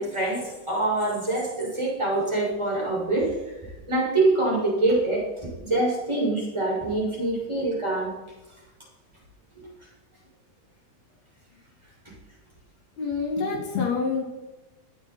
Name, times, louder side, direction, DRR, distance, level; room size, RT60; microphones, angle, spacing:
voice 1, 0.0-3.3 3.9-8.1 9.5-9.6, right 2 dB, 5° right, -6 dB, 6.6 m, -25 dB
voice 2, 13.0-14.2, left 5 dB, 70° left, -1 dB, 5.1 m, -27 dB
22.0 x 9.9 x 4.6 m, 1.1 s
omnidirectional pair, 4.7 m